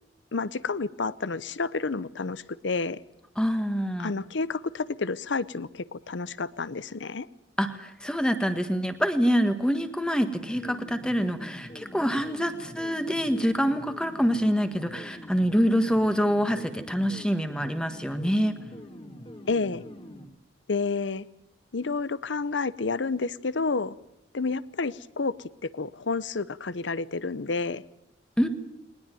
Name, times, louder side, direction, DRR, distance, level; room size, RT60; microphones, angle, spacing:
voice 1, 0.3-3.0 4.0-7.3 19.5-19.8 20.7-21.3 21.7-24.0 24.3-25.4 25.6-27.8, left 4 dB, 80° left, 18 dB, 0.8 m, -30 dB
voice 2, 3.4-4.1 7.6-18.6 28.4-28.5, equal, 5° left, 8 dB, 1.5 m, -26 dB
sound 1, 10.2-20.3, equal, 30° left, 2.2 m, -44 dB
20.5 x 20.0 x 9.2 m, 0.80 s
head